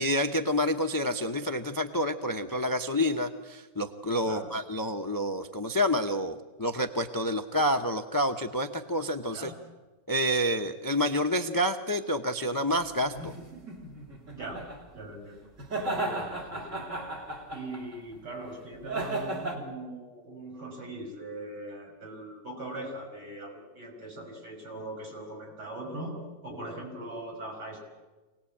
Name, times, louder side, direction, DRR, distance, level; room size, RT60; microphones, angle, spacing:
voice 1, 0.0-9.5 10.1-13.3, equal, 20° left, 7 dB, 0.6 m, -28 dB
sound 1, 13.0-14.8 15.6-17.9 18.8-19.6, right 2 dB, 40° right, 3.8 m, -35 dB
voice 2, 14.3-14.7 14.9-15.4 15.8-17.1 17.5-27.8, right 1 dB, 65° right, 0 dB, 6.6 m, -40 dB
26.5 x 19.0 x 8.6 m, 1.2 s
omnidirectional pair, 2.0 m